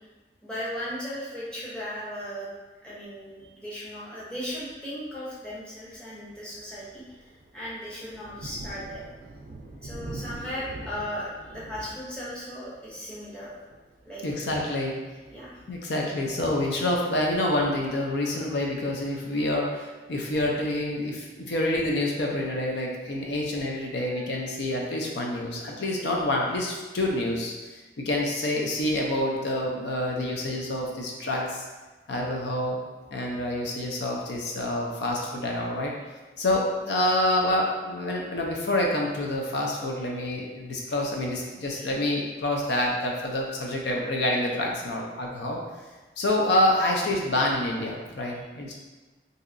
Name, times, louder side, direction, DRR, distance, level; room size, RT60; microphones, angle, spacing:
voice 1, 0.4-2.5 2.8-9.0 9.8-13.5 14.0-14.4 15.3-15.6 24.1-24.6 41.7-41.9, equal, 5° left, -9 dB, 0.8 m, -37 dB
Thunder, 4.5-4.9 5.4-5.6 6.0-16.6, right 2 dB, 50° right, 0.3 m, -45 dB
voice 2, 14.2-14.9 15.7-31.7 32.1-32.8 33.1-35.9 36.4-45.6 46.2-48.8, left 1 dB, 80° left, -1 dB, 0.5 m, -27 dB
3.0 x 2.7 x 2.5 m, 1.3 s
head